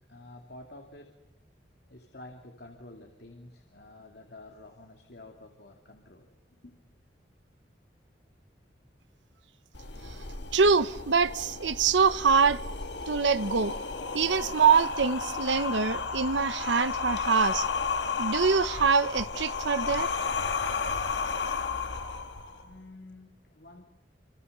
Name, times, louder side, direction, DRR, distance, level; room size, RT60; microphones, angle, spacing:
voice 1, 0.1-1.1 1.9-6.8 22.5-23.8, left 2 dB, 60° left, 2.7 m, -50 dB
sound 1, 9.7-22.7, left 5 dB, 75° left, 1.7 m, -33 dB
voice 2, 10.5-12.6 13.1-13.7 14.1-17.7 18.2-20.1, right 5 dB, 90° right, 0.9 m, -24 dB
27.5 x 27.0 x 6.8 m
head